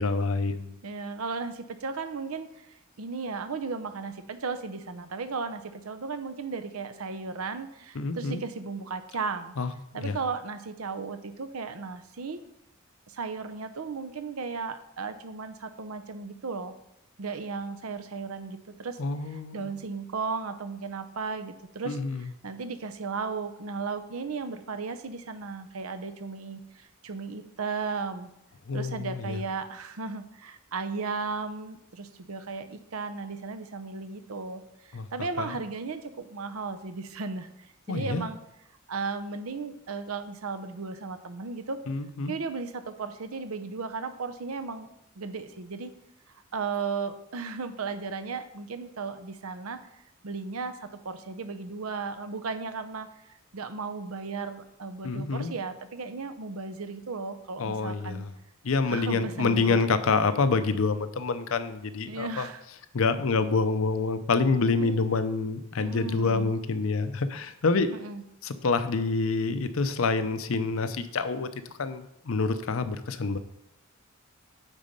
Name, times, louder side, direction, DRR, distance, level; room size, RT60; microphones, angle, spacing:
voice 1, 0.0-0.8 7.9-8.4 9.6-10.2 19.0-19.7 21.9-22.3 28.7-29.4 34.9-35.1 35.4-35.6 37.9-38.3 41.9-42.3 55.0-55.5 57.6-58.3 58.6-62.5 62.9-67.9 68.4-73.4, left 4 dB, 70° left, 10 dB, 0.6 m, -27 dB
voice 2, 0.8-9.6 9.9-12.4 13.1-16.7 17.2-19.0 19.5-28.3 28.7-37.5 37.9-38.4 38.9-41.8 42.3-44.9 45.2-45.9 46.5-53.1 53.5-58.2 58.9-59.8 62.1-62.6 64.8-65.0 65.8-66.5 68.0-68.2, right 4 dB, 85° right, 9 dB, 0.7 m, -35 dB
9.1 x 4.2 x 5.2 m, 0.82 s
head